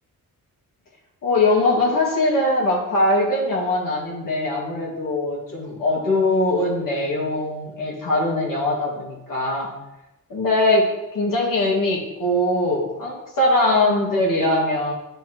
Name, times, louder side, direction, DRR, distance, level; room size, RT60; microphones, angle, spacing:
voice 1, 1.2-9.7 10.3-14.9, left 2 dB, 70° left, -4 dB, 2.8 m, -21 dB
10.5 x 5.4 x 4.7 m, 0.92 s
wide cardioid pair, 115°, 34 cm